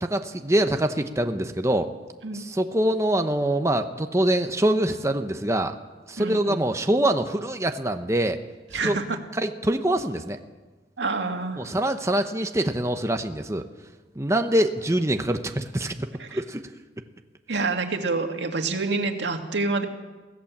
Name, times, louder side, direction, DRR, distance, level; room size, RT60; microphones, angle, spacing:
voice 1, 0.0-1.9 2.3-5.7 6.1-8.4 8.8-9.0 9.4-10.4 11.6-13.7 14.2-16.0 16.3-16.6, right 1 dB, 15° right, 6 dB, 0.9 m, -24 dB
voice 2, 6.2-6.6 8.7-9.2 11.0-11.7 16.2-16.4 17.5-19.8, right 3 dB, 90° right, 5 dB, 2.1 m, -27 dB
24.0 x 16.5 x 7.3 m, 1.3 s
head